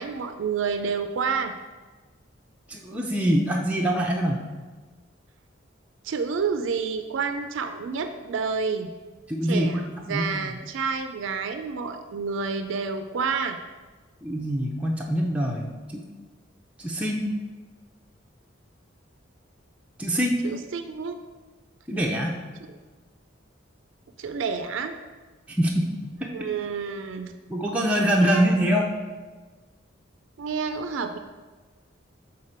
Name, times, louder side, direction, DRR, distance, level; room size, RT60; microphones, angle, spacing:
voice 1, 0.0-1.5 6.0-8.9 9.4-9.8 10.1-13.6 20.4-21.2 24.2-25.0 26.3-27.3 28.2-28.4 30.4-31.2, right 5 dB, 75° right, 8 dB, 0.4 m, -29 dB
voice 2, 2.7-4.4 9.3-10.3 14.2-16.0 16.8-17.3 20.0-20.4 21.9-22.4 25.5-25.9 26.2-26.3 27.5-28.9, equal, 5° right, -2 dB, 0.5 m, -24 dB
6.5 x 4.0 x 4.3 m, 1.3 s
head